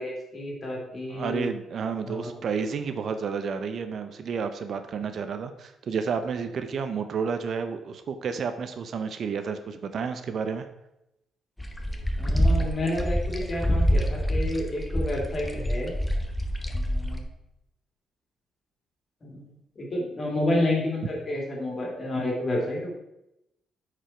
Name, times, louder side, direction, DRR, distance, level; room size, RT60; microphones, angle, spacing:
voice 1, 0.0-1.5 2.0-2.3 12.1-15.9 16.7-17.2 19.2-19.4 19.8-22.9, left 1 dB, 40° left, -1 dB, 2.9 m, -30 dB
voice 2, 1.1-10.7, right 6 dB, 60° right, 9 dB, 0.7 m, -31 dB
sound 1, 11.6-17.2, equal, 10° left, 1.0 m, -26 dB
8.8 x 5.0 x 4.5 m, 0.88 s
cardioid pair, 90°, 0 cm